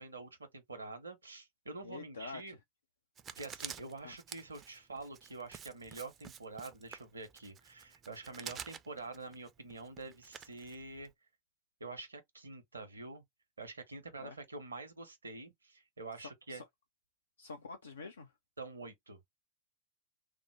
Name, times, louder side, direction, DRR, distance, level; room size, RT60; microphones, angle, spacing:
voice 1, 0.0-2.6 3.4-11.1 11.8-13.2 13.6-16.6 18.6-19.3, right 3 dB, 75° right, 0.6 m, -47 dB
voice 2, 1.8-2.6 4.0-4.2 14.2-14.4 16.2-16.6 17.4-18.3, left 4 dB, 70° left, 0.4 m, -47 dB
Writing, 3.2-11.1, right 8 dB, 25° right, 0.4 m, -49 dB
3.2 x 2.0 x 3.2 m
figure-of-eight pair, 90°, 0 cm